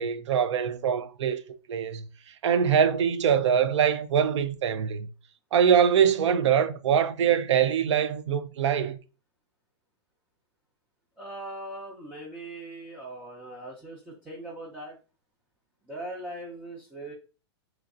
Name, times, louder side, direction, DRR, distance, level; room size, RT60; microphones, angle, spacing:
voice 1, 0.0-1.4 1.7-5.1 5.5-9.0, right 8 dB, 80° right, 0.4 m, -23 dB
voice 2, 11.2-15.0 15.9-17.1, right 1 dB, 10° right, 0.6 m, -40 dB
3.1 x 2.5 x 2.5 m
hypercardioid pair, 135°, 15 cm